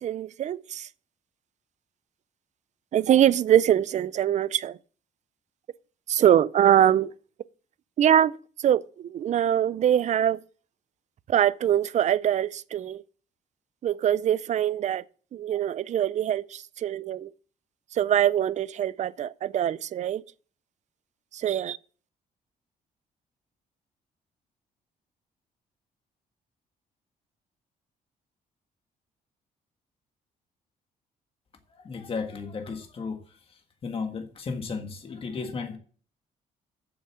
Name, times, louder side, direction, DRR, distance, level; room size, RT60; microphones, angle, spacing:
voice 1, 0.0-0.9 2.9-4.8 6.1-7.1 8.0-8.3 8.6-10.4 11.3-13.0 13.8-15.0 15.3-17.3 17.9-20.2 21.3-21.8, right 10 dB, 50° right, 0.5 m, -23 dB
voice 2, 31.7-33.2 33.8-35.8, left 4 dB, 40° left, 1.6 m, -34 dB
7.9 x 7.3 x 7.2 m
cardioid pair, 110°, 15 cm